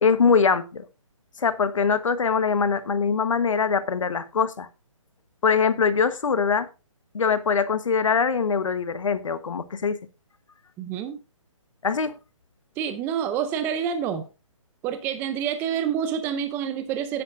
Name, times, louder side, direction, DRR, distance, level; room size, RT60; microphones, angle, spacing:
voice 1, 0.0-0.9 1.4-4.7 5.4-6.7 7.1-10.0 11.8-12.1, left 5 dB, 70° left, 13 dB, 1.2 m, -22 dB
voice 2, 10.8-11.2 12.8-14.3 14.8-17.2, right 8 dB, 10° right, 10 dB, 0.5 m, -27 dB
10.0 x 9.8 x 2.6 m, 0.30 s
hypercardioid pair, 150°, 17 cm